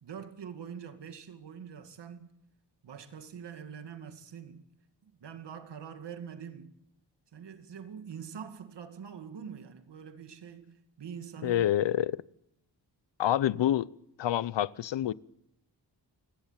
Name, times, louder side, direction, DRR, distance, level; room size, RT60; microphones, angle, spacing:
voice 1, 0.0-2.3 2.8-4.6 5.0-6.7 7.3-11.8, right 7 dB, 70° right, 2.2 m, -44 dB
voice 2, 11.4-12.2 13.2-13.9 14.2-15.1, left 12 dB, 85° left, 0.8 m, -27 dB
29.0 x 17.0 x 7.4 m
wide cardioid pair, 120°, 43 cm